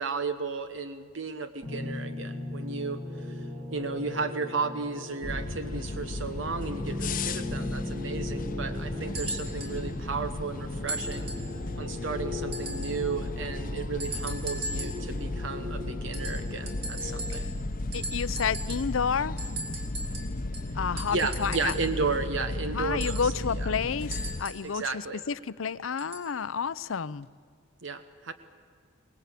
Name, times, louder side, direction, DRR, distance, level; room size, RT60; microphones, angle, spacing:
voice 1, 0.0-11.3 11.8-17.5 21.1-23.7 24.6-25.2 27.8-28.3, right 4 dB, 70° right, 9 dB, 1.0 m, -34 dB
sound 1, 1.6-17.3, left 2 dB, 35° right, 3.4 m, -39 dB
sound 2, 5.2-24.4, left 2 dB, 45° left, 0.8 m, -35 dB
sound 3, 9.1-9.8 10.9-11.5 12.5-13.1 14.0-15.1 16.1-17.7 17.9-19.0 19.4-22.0 23.0-24.7 26.0-26.3 27.2-27.3, right 2 dB, 55° right, 3.2 m, -39 dB
voice 2, 17.9-19.3 20.7-21.7 22.7-25.0 25.3-27.3, left 6 dB, 85° left, 16 dB, 0.6 m, -30 dB
22.5 x 20.0 x 8.4 m, 2.1 s
head